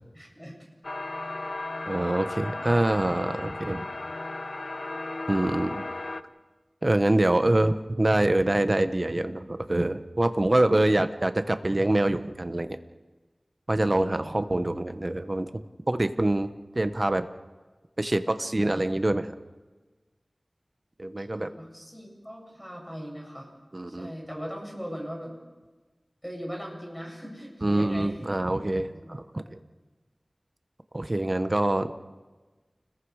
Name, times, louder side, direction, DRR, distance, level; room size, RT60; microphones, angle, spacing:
voice 1, 0.1-0.6 7.5-7.6 14.2-14.4 21.3-23.5 23.9-25.4 26.2-28.3 28.9-29.5, equal, 5° left, -1 dB, 7.8 m, -39 dB
sound 1, 0.8-6.2, left 2 dB, 65° left, 0.8 m, -35 dB
voice 2, 1.9-3.8 5.3-5.8 6.8-12.8 13.7-17.3 18.0-19.3 21.0-21.5 23.7-24.1 27.6-29.6 30.9-31.9, right 1 dB, 40° right, 10 dB, 1.1 m, -25 dB
30.0 x 21.0 x 4.9 m, 1.3 s
wide cardioid pair, 50°, 0 cm